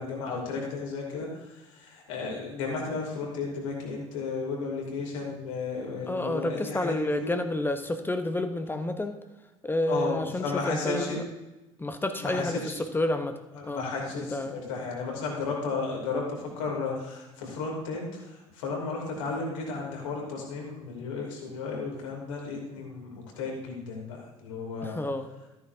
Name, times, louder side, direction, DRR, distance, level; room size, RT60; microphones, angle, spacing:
voice 1, 0.0-7.4 9.9-11.2 12.2-12.7 13.5-25.0, left 4 dB, 70° left, -1 dB, 3.0 m, -34 dB
voice 2, 6.1-9.2 9.6-11.2 11.8-13.9 14.2-14.6 24.8-25.3, left 1 dB, 10° left, 8 dB, 0.9 m, -30 dB
14.0 x 9.4 x 2.7 m, 1.1 s
figure-of-eight pair, 60°, 17 cm